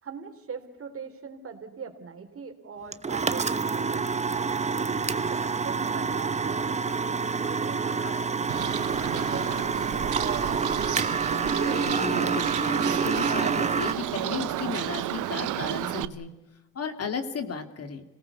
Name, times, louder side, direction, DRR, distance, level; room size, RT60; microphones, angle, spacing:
voice 1, 0.0-4.0 4.8-7.2 7.4-10.3, right 6 dB, 45° right, 7 dB, 3.5 m, -42 dB
sound 1, 2.9-13.9, right 5 dB, 25° right, 1.0 m, -27 dB
Bird, 8.5-16.0, right 14 dB, 80° right, 0.9 m, -32 dB
voice 2, 11.5-16.3 16.7-18.0, left 5 dB, 55° left, 8 dB, 2.5 m, -35 dB
26.0 x 18.5 x 8.2 m, 1.1 s
cardioid pair, 90°, 30 cm